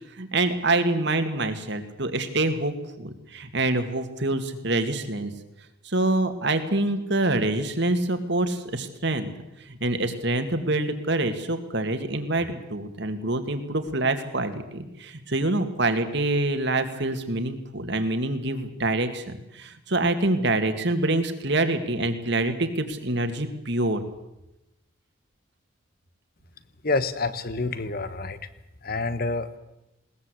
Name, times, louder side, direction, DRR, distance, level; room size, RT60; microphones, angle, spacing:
voice 1, 0.2-5.3 5.8-9.3 9.7-24.0, right 2 dB, 55° right, 8 dB, 2.3 m, -26 dB
voice 2, 26.8-28.4 28.8-29.6, left 3 dB, 45° left, 13 dB, 1.3 m, -28 dB
20.5 x 19.5 x 8.3 m, 0.93 s
head